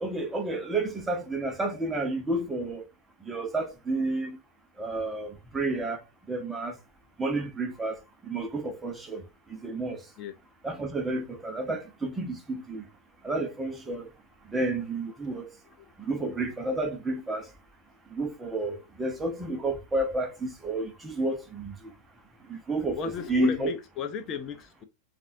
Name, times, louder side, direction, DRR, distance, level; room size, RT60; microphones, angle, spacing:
voice 1, 0.0-2.8 3.3-4.4 4.8-6.0 6.3-6.8 7.2-9.2 9.5-10.0 10.6-12.8 13.2-14.1 14.5-15.5 16.0-17.5 18.1-21.9 22.5-23.7, right 2 dB, 10° right, 1.0 m, -31 dB
voice 2, 23.0-24.8, left 7 dB, 35° left, 0.6 m, -35 dB
7.1 x 2.6 x 2.7 m
figure-of-eight pair, 90°, 0 cm